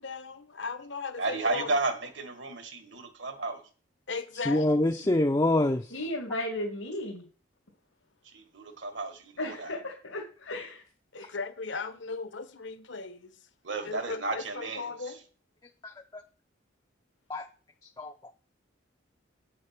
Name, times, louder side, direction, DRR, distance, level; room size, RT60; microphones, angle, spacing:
voice 1, 0.0-1.7 4.1-5.3 11.1-13.4 13.8-15.2, left 4 dB, 65° left, 1.0 m, -37 dB
voice 2, 1.2-3.6 8.2-9.7 13.6-15.2, right 3 dB, 65° right, 1.6 m, -33 dB
voice 3, 4.5-5.8 15.8-16.2 17.3-17.5 18.0-18.1, left 1 dB, 20° left, 0.5 m, -25 dB
voice 4, 5.9-7.2 9.4-9.8 10.0-10.8 11.1-11.3, left 1 dB, 85° left, 2.1 m, -35 dB
8.5 x 6.4 x 5.9 m
head